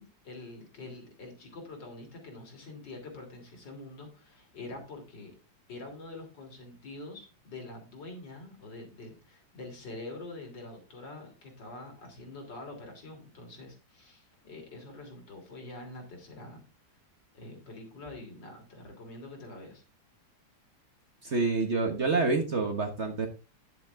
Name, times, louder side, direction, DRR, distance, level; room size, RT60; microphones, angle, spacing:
voice 1, 0.0-5.3 5.7-16.6 16.9-17.0 17.3-19.8, left 2 dB, 65° left, 2 dB, 3.6 m, -45 dB
voice 2, 21.2-23.3, right 3 dB, 40° right, 4 dB, 1.3 m, -27 dB
10.0 x 7.8 x 3.5 m, 0.31 s
omnidirectional pair, 2.1 m